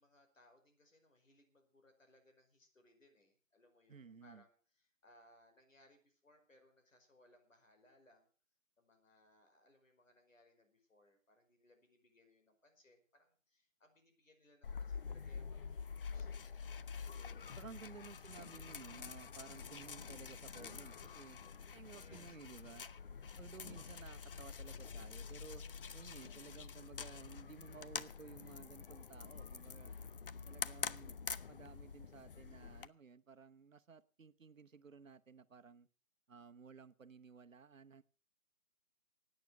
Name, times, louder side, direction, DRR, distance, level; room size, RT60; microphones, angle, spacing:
voice 1, 0.0-8.3 8.8-16.6 17.1-17.8 21.8-22.4, left 1 dB, 75° left, 5 dB, 5.2 m, -68 dB
voice 2, 3.9-4.4 17.5-21.4 21.7-22.9 23.4-25.6 25.9-29.9 30.5-31.2 31.5-35.9 36.3-38.0, right 5 dB, 75° right, 12 dB, 1.1 m, -56 dB
sound 1, 14.6-32.9, left 6 dB, 45° left, 0.6 m, -47 dB
16.5 x 9.3 x 6.6 m, 0.40 s
figure-of-eight pair, 145°, 39 cm